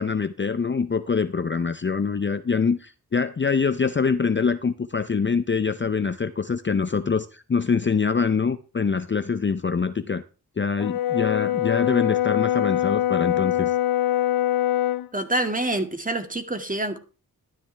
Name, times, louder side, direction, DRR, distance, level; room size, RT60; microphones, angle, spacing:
voice 1, 0.0-10.2 10.6-13.7, left 5 dB, 30° left, 12 dB, 0.6 m, -24 dB
Brass instrument, 10.8-15.1, left 13 dB, 70° left, 0.5 m, -23 dB
voice 2, 15.1-17.0, right 1 dB, 20° right, 6 dB, 2.1 m, -26 dB
12.0 x 10.5 x 3.3 m, 0.33 s
cardioid pair, 50°, 38 cm